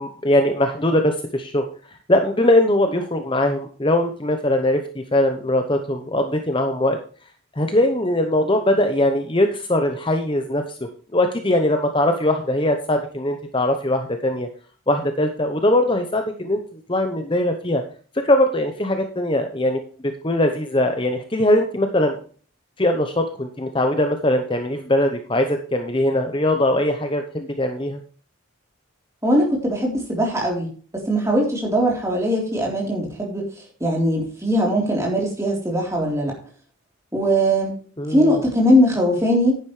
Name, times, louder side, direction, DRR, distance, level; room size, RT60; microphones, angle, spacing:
voice 1, 0.0-7.0 7.6-10.8 11.1-14.5 14.9-17.8 18.1-22.2 22.8-28.0 38.0-38.4, left 1 dB, 25° left, 6 dB, 0.9 m, -21 dB
voice 2, 29.2-30.7 30.9-33.5 33.8-36.3 37.1-37.7 38.1-39.6, equal, 15° right, -1 dB, 3.7 m, -20 dB
10.5 x 10.0 x 3.3 m, 0.42 s
head